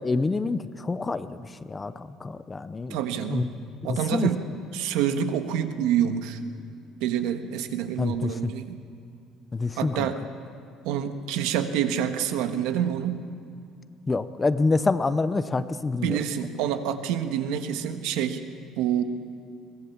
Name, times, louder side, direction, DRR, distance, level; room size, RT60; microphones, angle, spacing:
voice 1, 0.0-3.0 3.3-3.5 3.8-4.3 8.0-8.5 9.5-10.1 14.1-16.2, left 3 dB, 15° left, 13 dB, 0.6 m, -27 dB
voice 2, 2.9-3.5 3.8-4.4 4.7-6.4 7.0-8.8 9.8-10.2 10.8-13.2 16.0-18.4 18.8-19.0, right 9 dB, 90° right, 8 dB, 1.4 m, -27 dB
23.0 x 18.5 x 7.2 m, 2.4 s
cardioid pair, 165°, 0 cm